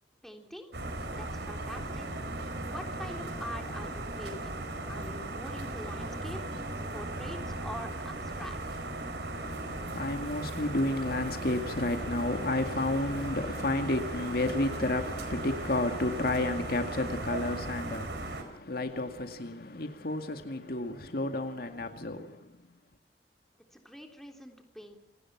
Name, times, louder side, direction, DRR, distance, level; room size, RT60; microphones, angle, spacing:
voice 1, 0.2-0.7 1.2-2.1 2.7-4.6 4.9-6.4 6.9-8.6 23.7-25.0, equal, ahead, 3.5 m, -44 dB
sound 1, 0.7-18.4, right 2 dB, 75° right, 4.3 m, -37 dB
voice 2, 9.3-22.5, left 2 dB, 60° left, 2.1 m, -31 dB
28.0 x 18.5 x 6.0 m
head